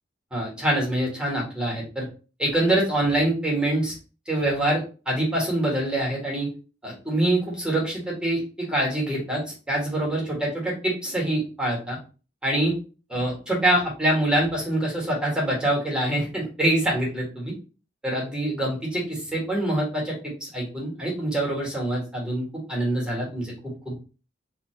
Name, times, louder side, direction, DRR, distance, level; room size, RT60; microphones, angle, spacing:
voice 1, 0.3-2.1 2.4-3.9 4.3-6.5 6.8-9.4 9.7-12.0 12.4-12.7 13.1-17.5 18.0-23.9, right 1 dB, 5° right, -3 dB, 1.4 m, -25 dB
2.8 x 2.8 x 4.3 m, 0.35 s
head